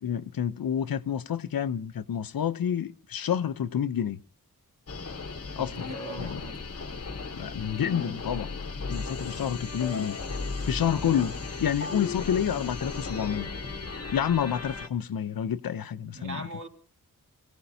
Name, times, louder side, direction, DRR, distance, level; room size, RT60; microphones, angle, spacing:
voice 1, 0.0-4.2 5.6-5.7 6.2-6.4 7.3-8.5 8.9-10.2 10.7-11.3 11.6-13.5 14.1-16.5, left 9 dB, 70° left, 0.7 m, -29 dB
sound 1, 4.9-14.9, left 4 dB, 40° left, 1.1 m, -36 dB
voice 2, 5.6-6.6 11.0-11.3 16.1-16.7, right 1 dB, 55° right, 3.5 m, -40 dB
24.0 x 16.5 x 2.7 m
wide cardioid pair, 80°, 36 cm